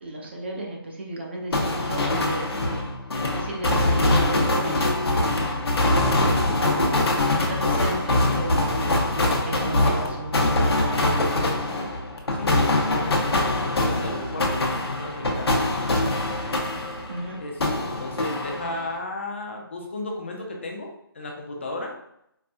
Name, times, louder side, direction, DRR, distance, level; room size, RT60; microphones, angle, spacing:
voice 1, 0.0-2.8 3.3-6.0 6.6-11.7 17.1-17.4, right 2 dB, 30° right, 0 dB, 0.4 m, -34 dB
sound 1, 1.5-17.3 17.6-19.0, left 2 dB, 85° left, 0.8 m, -23 dB
voice 2, 12.3-15.8 17.4-21.9, left 2 dB, 30° left, 1 dB, 0.4 m, -34 dB
4.2 x 2.5 x 2.2 m, 0.75 s
hypercardioid pair, 170°, 13 cm